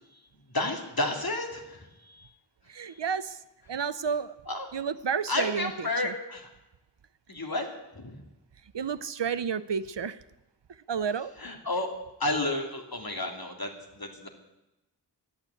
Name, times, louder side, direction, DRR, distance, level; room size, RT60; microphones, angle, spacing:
voice 1, 0.5-2.3 2.8-3.0 4.5-4.7 5.3-6.5 7.3-7.7 7.9-8.2 11.4-11.9 12.2-14.3, left 2 dB, 55° left, 3 dB, 3.0 m, -31 dB
voice 2, 2.7-3.4 3.7-4.3 4.7-5.7 6.0-6.1 8.7-10.2 10.9-11.3, right 6 dB, 80° right, 15 dB, 0.8 m, -30 dB
13.0 x 11.5 x 8.4 m, 0.94 s
wide cardioid pair, 45°, 42 cm